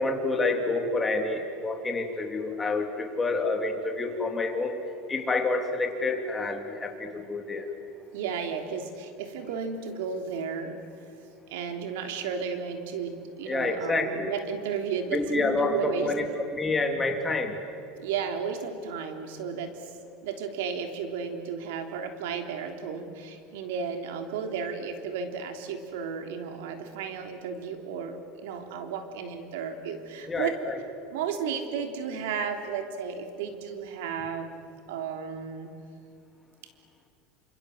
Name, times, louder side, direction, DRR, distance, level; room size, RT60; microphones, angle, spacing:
voice 1, 0.0-4.8 5.1-7.7 13.5-14.4 15.1-17.6 30.3-30.8, left 2 dB, 15° left, 4 dB, 3.1 m, -28 dB
voice 2, 8.1-10.8 11.5-16.1 18.0-19.8 20.2-30.6 31.1-34.6 34.9-35.7, right 6 dB, 85° right, 6 dB, 3.3 m, -33 dB
28.0 x 26.5 x 7.9 m, 2.4 s
supercardioid pair, 135°, 0 cm